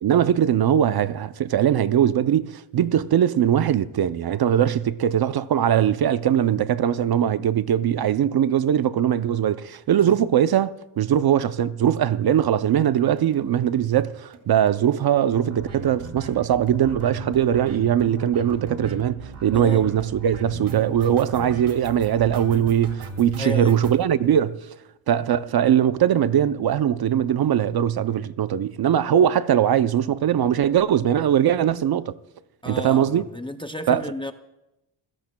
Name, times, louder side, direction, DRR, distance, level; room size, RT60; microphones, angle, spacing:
voice 1, 0.0-24.6 25.1-32.1 32.7-33.2 33.9-34.1, right 10 dB, 50° right, 0.5 m, -21 dB
sound 1, 13.2-13.4 13.7-13.8 14.0-14.1 14.3-14.4 14.7-24.0, right 3 dB, 85° right, 2.4 m, -37 dB
voice 2, 19.5-19.9 23.4-23.8 32.6-34.3, left 1 dB, 10° left, 0.4 m, -32 dB
27.0 x 16.5 x 2.2 m
wide cardioid pair, 150°, 48 cm